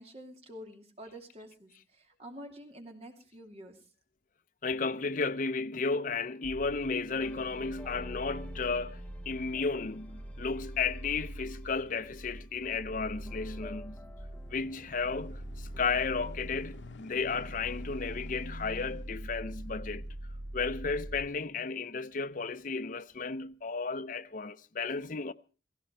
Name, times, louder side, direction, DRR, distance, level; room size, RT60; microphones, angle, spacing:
voice 1, 0.0-3.8, equal, 35° right, 2.7 m, -48 dB
voice 2, 4.6-14.0 14.5-20.1 20.5-25.3, left 4 dB, 50° left, 0.7 m, -33 dB
sound 1, 6.4-21.3, right 1 dB, 80° right, 2.3 m, -43 dB
sound 2, 7.2-12.4 12.9-15.8, left 2 dB, 10° left, 1.0 m, -53 dB
sound 3, 13.8-22.5 23.1-23.2, left 3 dB, 90° left, 0.8 m, -53 dB
16.5 x 16.5 x 4.5 m
head